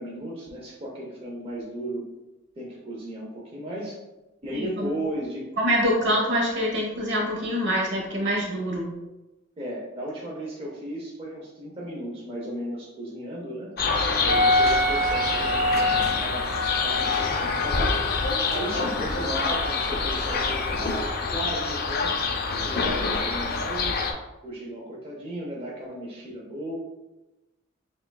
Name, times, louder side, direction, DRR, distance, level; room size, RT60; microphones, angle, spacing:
voice 1, 0.0-2.1 2.6-4.0 4.4-5.5 9.6-13.7 14.2-16.5 16.8-18.0 18.5-22.2 22.6-24.1 24.4-26.7, right 1 dB, 30° right, -5 dB, 0.6 m, -35 dB
voice 2, 4.5-4.9 5.6-8.9, equal, 60° right, -2 dB, 1.1 m, -25 dB
sound 1, 13.8-24.1, left 4 dB, 50° left, 0.4 m, -26 dB
sound 2, 14.3-19.8 20.2-21.1, left 1 dB, 80° right, 1.2 m, -27 dB
6.4 x 2.3 x 2.2 m, 1.0 s
head